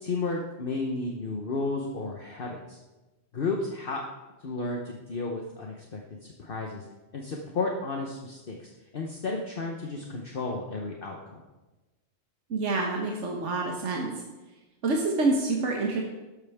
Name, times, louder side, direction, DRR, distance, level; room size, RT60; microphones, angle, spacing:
voice 1, 0.0-2.8 3.3-4.0 4.4-6.9 7.1-11.4, left 3 dB, 50° left, 1 dB, 1.2 m, -33 dB
voice 2, 12.5-14.2 14.8-16.0, right 3 dB, 75° right, 0 dB, 1.6 m, -27 dB
12.5 x 12.0 x 3.6 m, 1.1 s
omnidirectional pair, 1.2 m